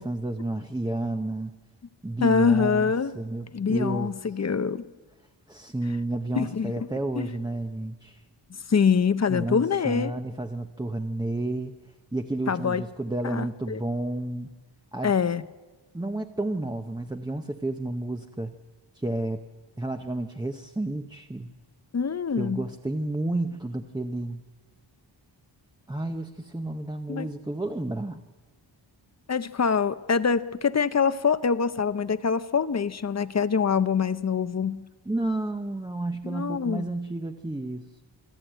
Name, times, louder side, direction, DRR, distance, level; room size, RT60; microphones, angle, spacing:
voice 1, 0.0-1.6 2.0-4.1 5.5-8.2 9.3-11.7 12.1-14.5 14.9-15.1 15.9-18.5 18.9-19.4 19.8-21.5 22.4-24.4 25.9-28.2 35.1-38.0, right 2 dB, 10° right, 4 dB, 0.7 m, -31 dB
voice 2, 2.2-3.1 3.5-4.8 6.3-6.7 7.2-7.3 8.7-10.1 12.5-12.8 13.2-13.8 15.0-15.4 21.9-22.7 27.1-27.3 29.3-34.9 36.2-36.9, left 6 dB, 35° left, 13 dB, 0.6 m, -24 dB
27.0 x 12.5 x 9.0 m, 1.3 s
wide cardioid pair, 160°, 46 cm